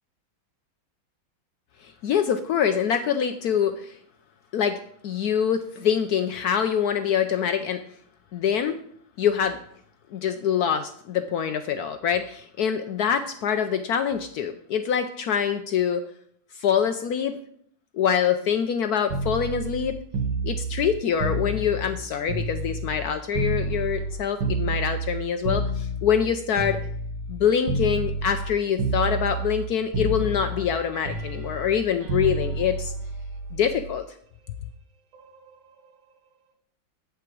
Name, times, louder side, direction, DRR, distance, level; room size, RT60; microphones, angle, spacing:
voice 1, 1.8-4.0 4.5-7.8 8.3-8.8 9.2-9.6 10.1-16.1 16.5-17.4 17.9-20.0 20.4-26.8 27.3-32.9 33.5-34.0, left 8 dB, 75° left, 8 dB, 0.9 m, -25 dB
sound 1, 19.1-23.0 23.3-27.4 27.7-28.5 28.8-29.7 29.9-33.9 35.1-35.4, right 2 dB, 75° right, 2.0 m, -29 dB
8.4 x 7.8 x 4.6 m, 0.64 s
omnidirectional pair, 2.2 m